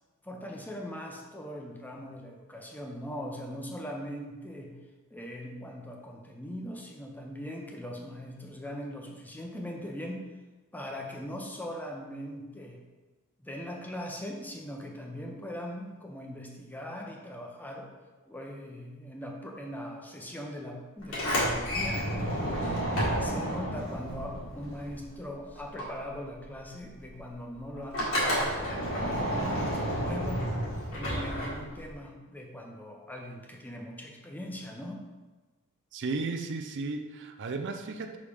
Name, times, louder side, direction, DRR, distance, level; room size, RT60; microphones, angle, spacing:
voice 1, 0.2-4.7 5.1-10.3 10.7-12.8 13.4-17.9 18.2-22.9 23.2-30.5 30.9-35.0, equal, 10° left, 1 dB, 0.6 m, -40 dB
Sliding door, 21.0-25.3 25.6-31.9, equal, 65° left, 1.9 m, -31 dB
voice 2, 35.9-38.2, right 3 dB, 55° right, 6 dB, 0.5 m, -34 dB
5.4 x 4.9 x 3.5 m, 1.2 s
head